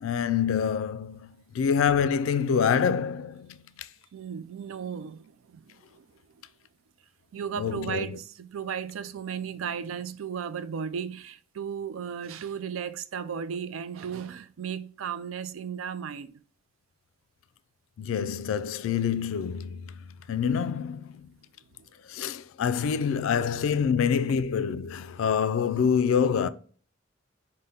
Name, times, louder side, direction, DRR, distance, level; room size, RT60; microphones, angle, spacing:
voice 1, 0.0-1.3 1.5-3.9 7.6-8.2 18.0-21.3 22.1-26.5, left 7 dB, 80° left, 0.3 m, -26 dB
voice 2, 4.1-6.1 6.3-6.4 7.3-16.4 21.8-21.9, right 7 dB, 85° right, 0.4 m, -35 dB
5.4 x 2.1 x 3.4 m
head